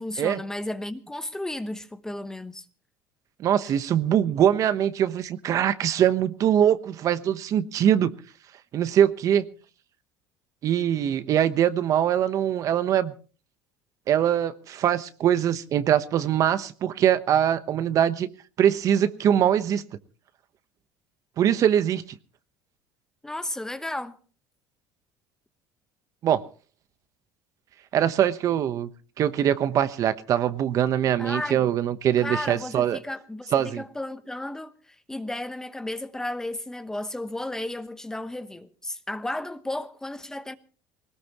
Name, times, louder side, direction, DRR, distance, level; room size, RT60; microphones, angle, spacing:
voice 1, 0.0-2.6 23.2-24.2 31.2-31.6 32.2-40.6, left 1 dB, 5° left, 1.0 m, -33 dB
voice 2, 3.4-8.1 8.7-9.5 10.6-13.1 14.1-18.3 18.6-19.8 21.4-22.2 26.2-26.4 27.9-28.9 29.2-33.0 33.5-33.8, right 10 dB, 45° right, 1.1 m, -22 dB
20.5 x 18.5 x 3.0 m
cardioid pair, 125°, 8 cm